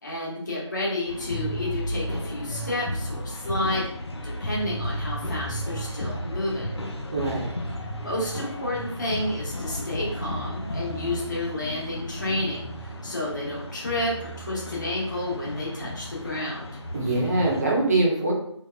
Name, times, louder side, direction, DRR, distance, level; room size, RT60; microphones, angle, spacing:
voice 1, 0.0-3.9 4.2-6.8 7.9-12.7 13.0-16.8, left 1 dB, 40° left, -4 dB, 1.0 m, -30 dB
sound 1, 1.1-17.6, equal, 60° left, 0.6 m, -33 dB
voice 2, 7.1-7.6 16.9-18.3, right 2 dB, 30° right, -3 dB, 0.8 m, -23 dB
3.3 x 2.8 x 2.3 m, 0.69 s
figure-of-eight pair, 165°, 16 cm